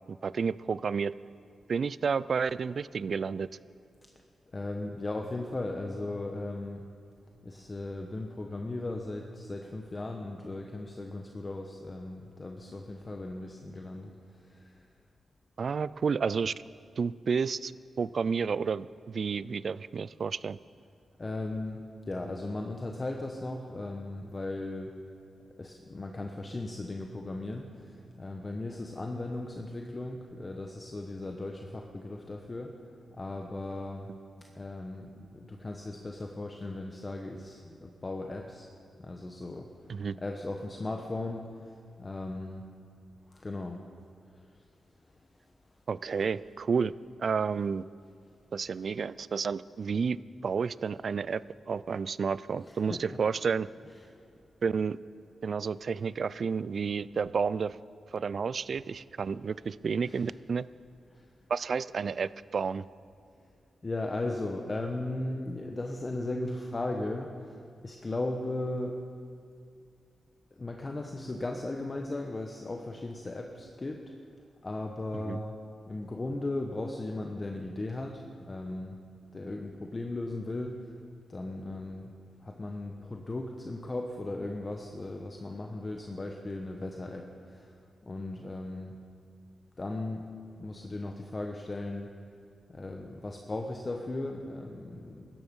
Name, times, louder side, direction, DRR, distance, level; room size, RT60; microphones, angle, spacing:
voice 1, 0.1-1.1 1.7-3.5 15.6-16.5 17.0-17.7 18.0-20.6 39.9-40.2 45.9-46.9 47.2-47.8 48.5-53.7 54.6-55.0 55.4-57.8 58.1-60.7 61.5-62.8 75.1-75.4, right 5 dB, 60° right, 19 dB, 0.4 m, -31 dB
voice 2, 4.5-6.8 7.4-14.8 21.2-24.9 25.6-32.7 33.1-34.1 34.5-38.7 39.0-39.7 40.2-42.6 43.3-43.8 44.5-44.6 52.7-53.2 54.1-54.3 60.0-60.2 61.1-61.3 63.8-67.6 67.8-69.0 70.6-74.0 74.6-75.6 75.9-79.0 79.3-80.8 81.3-82.1 82.4-87.8 88.0-89.0 89.8-90.3 90.5-92.1 92.7-95.4, left 2 dB, 30° left, 3 dB, 1.1 m, -37 dB
16.5 x 13.5 x 5.4 m, 2.3 s
cardioid pair, 70°, 0 cm